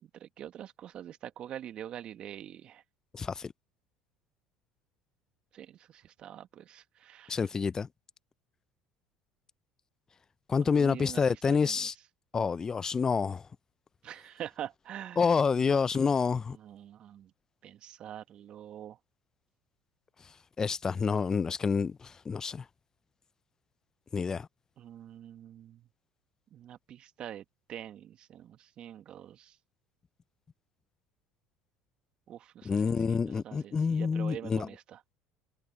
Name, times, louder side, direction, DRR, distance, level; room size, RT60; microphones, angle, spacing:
voice 1, 0.0-2.8 5.5-7.5 10.6-11.9 14.0-15.2 15.6-15.8 16.6-17.3 17.6-19.0 24.8-25.9 26.5-29.6 32.3-35.0, right 10 dB, 50° right, 2.1 m, -45 dB
voice 2, 3.1-3.5 7.3-7.9 10.5-11.9 12.3-13.4 15.2-16.6 20.6-22.6 24.1-24.5 32.6-34.7, left 5 dB, 30° left, 0.6 m, -28 dB
hypercardioid pair, 70°, 2 cm